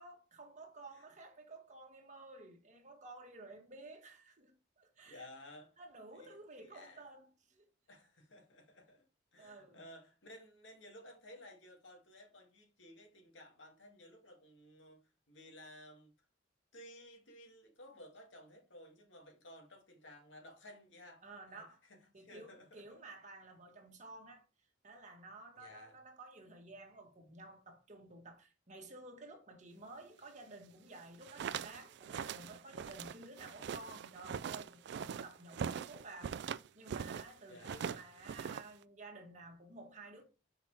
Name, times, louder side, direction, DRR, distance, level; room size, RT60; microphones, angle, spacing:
voice 1, 0.0-5.3 5.8-7.7 9.4-9.8 21.2-21.8 22.1-24.4 24.8-36.4 36.7-40.2, right 2 dB, 40° right, 1.4 m, -53 dB
voice 2, 5.1-5.8 6.1-7.1 7.9-9.0 9.3-15.0 15.3-16.1 16.7-21.6 21.9-23.0 25.6-26.0 37.5-38.1, left 1 dB, 80° left, 2.1 m, -56 dB
sound 1, 31.1-37.3 37.6-38.8, right 7 dB, 65° right, 0.3 m, -42 dB
6.2 x 5.1 x 3.3 m
head